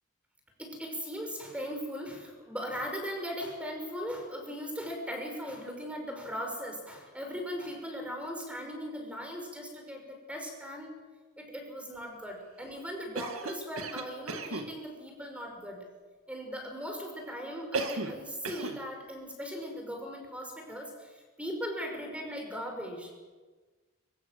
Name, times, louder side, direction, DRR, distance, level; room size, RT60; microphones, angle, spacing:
voice 1, 0.6-11.0 11.4-15.9 16.3-23.1, equal, 5° right, 2 dB, 5.5 m, -39 dB
Cough, 13.1-14.7 17.7-18.2 18.4-18.8, right 3 dB, 75° right, 1.9 m, -35 dB
24.0 x 23.0 x 7.6 m, 1.4 s
head